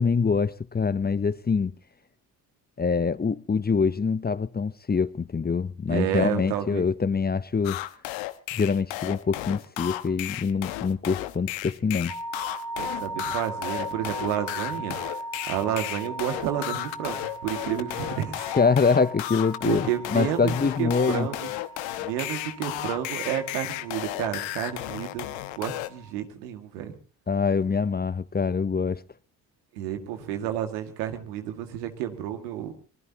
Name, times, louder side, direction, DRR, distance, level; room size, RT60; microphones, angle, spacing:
voice 1, 0.0-1.7 2.8-7.8 8.5-12.2 18.5-21.3 27.3-29.0, left 5 dB, 20° left, 0.7 m, -25 dB
voice 2, 5.9-6.9 12.8-15.0 15.5-18.5 19.6-21.4 22.0-26.9 29.7-32.7, right 11 dB, 90° right, 2.1 m, -31 dB
sound 1, 7.6-25.9, left 16 dB, 75° left, 1.1 m, -34 dB
sound 2, 12.1-26.1, right 1 dB, 65° right, 2.6 m, -39 dB
24.0 x 20.0 x 2.9 m
hypercardioid pair, 55°, 46 cm